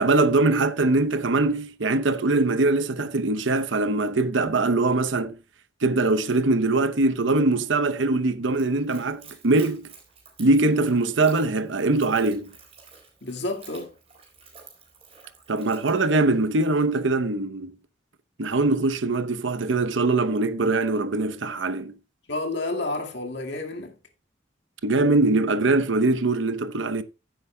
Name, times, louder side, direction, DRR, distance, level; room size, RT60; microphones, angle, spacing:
voice 1, 0.0-5.4 5.8-9.9 10.4-12.5 15.5-17.7 18.4-21.9 24.8-27.0, right 2 dB, 80° right, 0.9 m, -22 dB
Splash splatter / Trickle dribble, 8.5-16.8, right 5 dB, 30° right, 4.1 m, -51 dB
voice 2, 13.2-14.0 22.3-24.0, left 2 dB, 65° left, 2.0 m, -30 dB
15.5 x 8.1 x 2.2 m
head